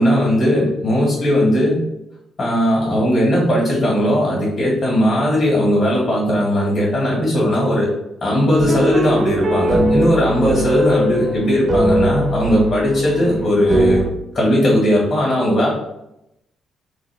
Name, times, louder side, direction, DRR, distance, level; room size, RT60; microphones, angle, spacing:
voice 1, 0.0-1.8 2.4-7.9 8.2-14.0 14.3-15.7, equal, 45° left, -4 dB, 1.5 m, -17 dB
sound 1, 8.6-14.1, right 1 dB, 45° right, 0.4 m, -20 dB
3.5 x 2.1 x 3.4 m, 0.86 s
cardioid pair, 90°, 0 cm